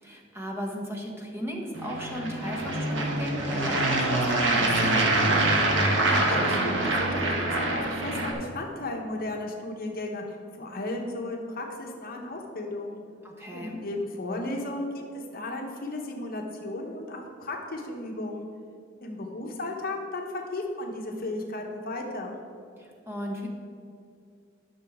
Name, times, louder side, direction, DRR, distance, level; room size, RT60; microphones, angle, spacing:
voice 1, 0.0-5.4 13.2-13.8 22.8-23.5, equal, 15° right, 0 dB, 1.2 m, -36 dB
sound 1, 1.7-8.3, right 2 dB, 70° right, 1.2 m, -25 dB
voice 2, 6.0-13.0 13.5-18.5 19.0-22.4, left 2 dB, 50° left, 1 dB, 1.1 m, -34 dB
12.5 x 6.1 x 3.7 m, 2.4 s
head